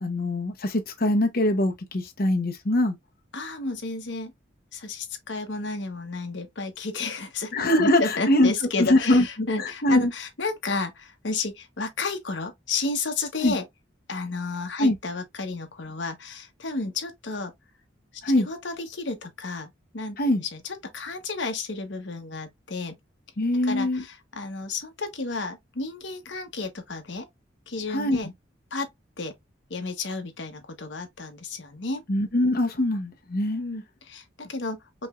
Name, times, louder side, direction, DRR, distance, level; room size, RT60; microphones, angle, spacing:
voice 1, 0.0-3.0 7.5-8.5 8.8-10.1 13.4-13.5 14.8-15.0 18.2-18.5 20.2-20.4 23.4-24.0 27.9-28.2 32.1-33.6, left 1 dB, 50° left, 1.0 m, -23 dB
voice 2, 3.3-4.3 4.7-7.5 7.8-13.6 14.1-17.5 18.1-20.2 20.5-23.0 23.6-27.3 27.7-28.3 28.7-28.9 29.2-29.3 29.7-32.0 33.5-35.1, left 3 dB, 70° left, 1.1 m, -32 dB
5.2 x 3.0 x 2.5 m
head